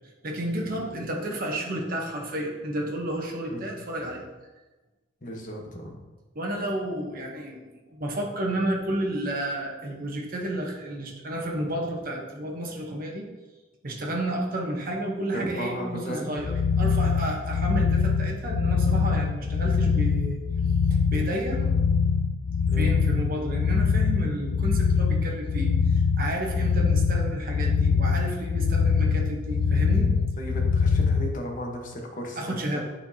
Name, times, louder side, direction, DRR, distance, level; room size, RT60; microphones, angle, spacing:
voice 1, 0.2-4.2 6.3-7.6 7.9-13.2 13.8-20.4 20.9-21.7 22.8-30.1 32.4-32.8, right 1 dB, 50° right, -1 dB, 1.0 m, -31 dB
voice 2, 5.2-6.0 15.3-16.3 22.7-22.9 30.4-32.8, equal, 45° left, 1 dB, 1.1 m, -35 dB
sound 1, 16.4-31.3, left 5 dB, 60° left, 0.3 m, -23 dB
8.4 x 4.4 x 2.8 m, 1.2 s
head